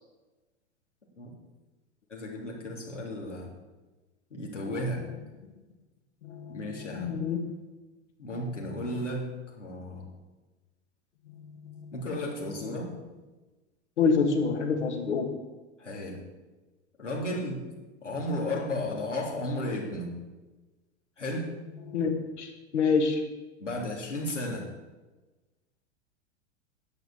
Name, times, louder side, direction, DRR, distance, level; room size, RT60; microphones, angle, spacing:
voice 1, 2.1-3.5 4.3-5.0 6.5-7.2 8.2-9.3 9.6-10.1 11.9-12.9 15.8-16.2 17.0-17.7 18.0-20.1 21.2-21.5 23.6-24.7, left 1 dB, 90° left, -2 dB, 3.3 m, -34 dB
voice 2, 6.2-7.4 8.4-8.9 11.3-12.1 14.0-15.4 21.8-23.2, left 5 dB, 70° left, 3 dB, 2.3 m, -28 dB
10.5 x 8.0 x 7.2 m, 1.2 s
figure-of-eight pair, 95°, 35 cm